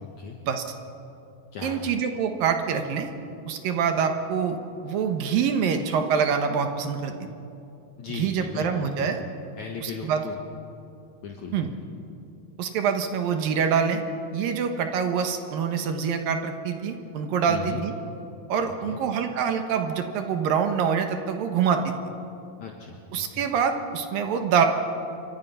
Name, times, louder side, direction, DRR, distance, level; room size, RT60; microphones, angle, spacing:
voice 1, 0.0-0.4 1.5-2.0 8.0-9.3 9.6-10.4 11.2-11.7 17.5-17.8 18.8-19.0 22.6-23.5, left 5 dB, 60° left, 1 dB, 2.4 m, -37 dB
voice 2, 1.6-3.1 3.5-4.6 4.8-7.1 8.1-9.2 9.8-10.2 11.5-11.7 12.6-14.0 14.3-17.9 18.5-21.9 23.1-24.7, right 7 dB, 70° right, 6 dB, 2.9 m, -25 dB
27.0 x 24.5 x 5.7 m, 2.7 s
omnidirectional pair, 4.4 m